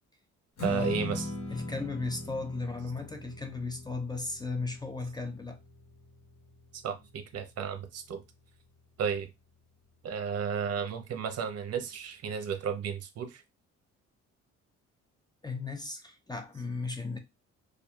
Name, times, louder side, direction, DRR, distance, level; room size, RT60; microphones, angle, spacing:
Strum, 0.6-6.9, left 1 dB, 60° left, 1.2 m, -39 dB
voice 1, 0.6-1.3 6.7-8.2 9.0-9.3 10.0-13.4, right 7 dB, 55° right, 0.6 m, -33 dB
voice 2, 1.5-5.6 15.4-17.2, left 3 dB, 15° left, 0.4 m, -36 dB
2.7 x 2.3 x 2.3 m
cardioid pair, 90°, 30 cm